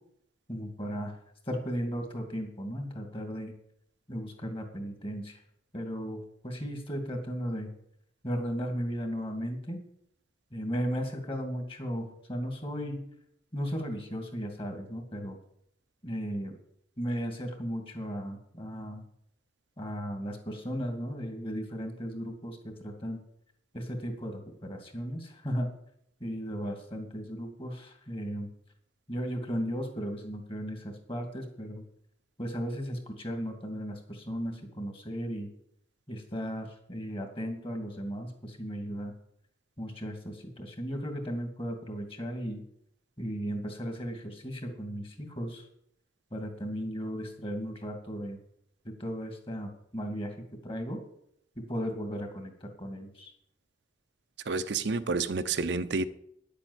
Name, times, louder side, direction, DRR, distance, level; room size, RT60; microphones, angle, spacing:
voice 1, 0.5-1.2 1.5-3.5 4.1-5.4 5.7-7.7 8.2-9.8 10.5-13.0 13.5-15.4 16.0-16.6 17.0-19.0 19.8-23.2 23.7-25.7 26.2-28.5 29.1-31.8 32.4-35.5 36.1-39.1 39.8-42.6 43.2-45.7 46.3-48.4 48.8-51.0 51.6-53.3, equal, 30° left, 2.5 m, -36 dB
voice 2, 54.5-56.1, right 4 dB, 70° right, 0.7 m, -29 dB
10.0 x 8.5 x 8.2 m
head